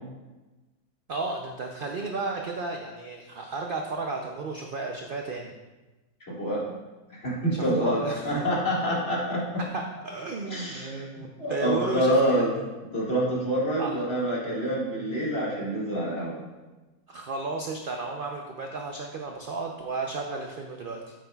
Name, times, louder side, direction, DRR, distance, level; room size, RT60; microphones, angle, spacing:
voice 1, 1.1-5.5 7.5-8.5 9.6-12.5 13.8-14.0 17.1-21.1, right 3 dB, 60° right, 2 dB, 0.5 m, -33 dB
voice 2, 6.3-6.6 7.1-8.0 8.2-9.6 10.5-11.0 11.4-12.5 12.9-16.4, equal, 40° left, -6 dB, 2.2 m, -26 dB
9.4 x 8.2 x 2.3 m, 1.2 s
omnidirectional pair, 1.6 m